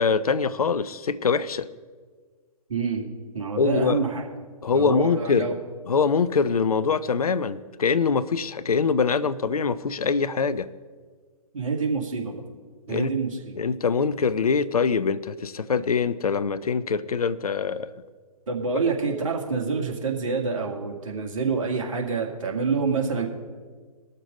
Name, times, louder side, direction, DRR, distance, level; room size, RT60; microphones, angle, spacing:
voice 1, 0.0-1.7 3.6-4.0 4.6-5.5 5.8-10.7 12.9-13.1 13.6-17.9, left 5 dB, 70° left, 18 dB, 0.5 m, -24 dB
voice 2, 2.7-3.0 3.3-4.3 4.7-5.5 11.5-12.3 12.9-13.5 18.5-23.3, right 4 dB, 55° right, 1 dB, 2.1 m, -27 dB
19.5 x 6.7 x 5.1 m, 1.5 s
figure-of-eight pair, 130°, 19 cm